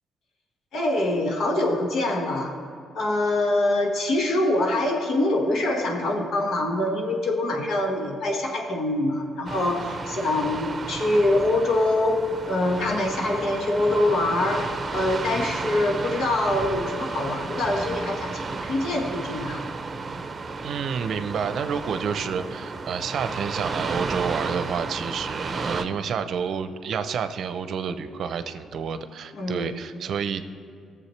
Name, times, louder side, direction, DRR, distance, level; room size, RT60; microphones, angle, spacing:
voice 1, 0.7-2.6 2.9-19.6 29.3-29.7, left 1 dB, 70° left, 1 dB, 1.6 m, -24 dB
sound 1, 9.5-25.8, right 3 dB, 30° right, 0.8 m, -33 dB
voice 2, 20.6-30.5, right 6 dB, 65° right, 10 dB, 0.6 m, -29 dB
18.0 x 7.2 x 3.3 m, 2.3 s
cardioid pair, 90°, 0 cm